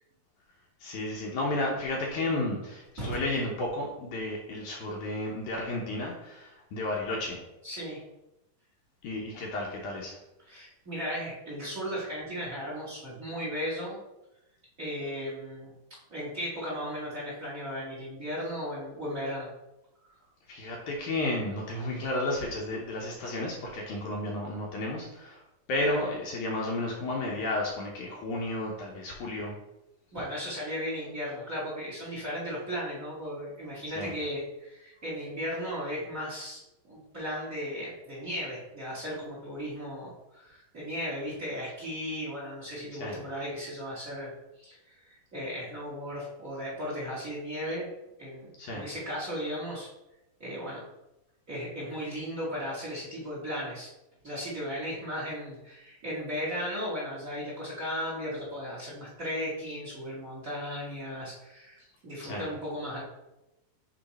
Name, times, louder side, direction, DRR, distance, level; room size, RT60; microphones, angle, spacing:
voice 1, 0.8-7.4 9.0-10.1 20.5-25.4 25.7-29.5 34.0-34.1 43.0-43.2 48.6-48.9 62.2-62.5, left 2 dB, 70° left, -2 dB, 2.1 m, -32 dB
voice 2, 7.6-8.0 10.4-14.0 14.8-15.7 16.1-19.5 25.8-26.0 30.1-44.3 44.6-47.9 48.2-49.9 50.4-50.8 51.5-53.9 54.2-63.0, equal, 30° right, -7 dB, 1.7 m, -36 dB
8.6 x 3.1 x 4.1 m, 0.94 s
omnidirectional pair, 4.1 m